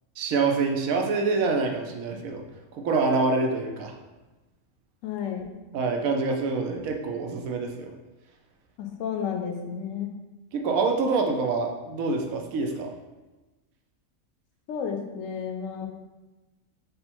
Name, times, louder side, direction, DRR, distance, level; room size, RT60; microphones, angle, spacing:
voice 1, 0.2-2.4 2.7-3.9 5.7-7.9 10.5-12.9, right 4 dB, 85° right, 2 dB, 1.1 m, -26 dB
voice 2, 5.0-5.5 8.8-10.1 14.7-15.9, left 7 dB, 75° left, 3 dB, 0.9 m, -32 dB
5.2 x 2.0 x 4.3 m, 1.1 s
omnidirectional pair, 1.4 m